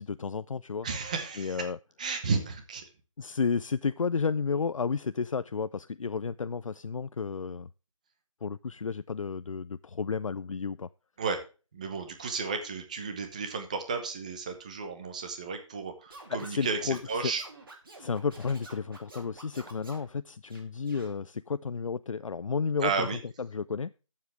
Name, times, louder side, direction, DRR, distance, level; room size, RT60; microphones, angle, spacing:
voice 1, 0.0-0.9 1.4-1.8 3.2-7.7 8.4-10.9 16.3-17.3 18.0-23.1 23.4-23.9, left 5 dB, 75° left, 0.4 m, -32 dB
voice 2, 0.8-1.6 2.0-2.8 11.2-11.4 11.7-17.4 22.8-23.2, right 5 dB, 15° right, 0.9 m, -33 dB
Scratching (performance technique), 16.1-20.1 20.5-21.1, right 2 dB, 40° right, 2.7 m, -50 dB
12.5 x 7.4 x 3.3 m
figure-of-eight pair, 170°, 17 cm